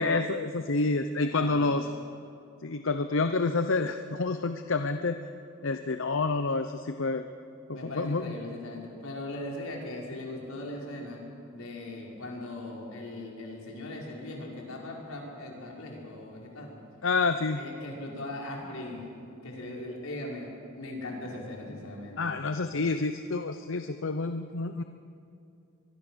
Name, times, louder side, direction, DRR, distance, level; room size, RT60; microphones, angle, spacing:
voice 1, 0.0-1.9 2.6-5.2 5.6-7.3 7.7-8.3 17.0-17.6 22.2-24.8, left 3 dB, 65° left, 8 dB, 0.8 m, -28 dB
voice 2, 1.2-1.7 7.7-11.2 11.5-16.8 17.5-19.1 19.4-20.5 20.8-22.3, left 1 dB, 85° left, -2 dB, 5.1 m, -39 dB
23.5 x 22.5 x 6.3 m, 2.6 s
head